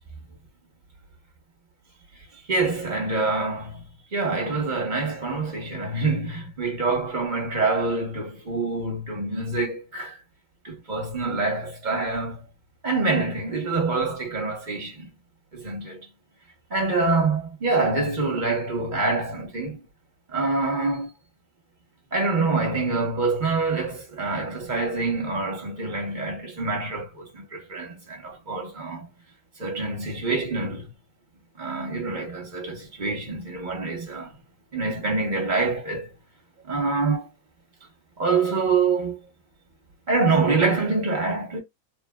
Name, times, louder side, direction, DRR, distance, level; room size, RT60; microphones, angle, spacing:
voice 1, 2.5-3.8 4.1-10.2 10.6-12.4 12.8-15.1 15.5-16.1 16.7-19.8 20.3-21.1 22.1-29.1 29.6-30.9 31.6-34.3 34.7-36.1 36.6-37.3 38.2-39.2 40.1-41.6, right 3 dB, 35° right, 1.0 m, -26 dB
3.5 x 2.2 x 2.2 m
omnidirectional pair, 1.6 m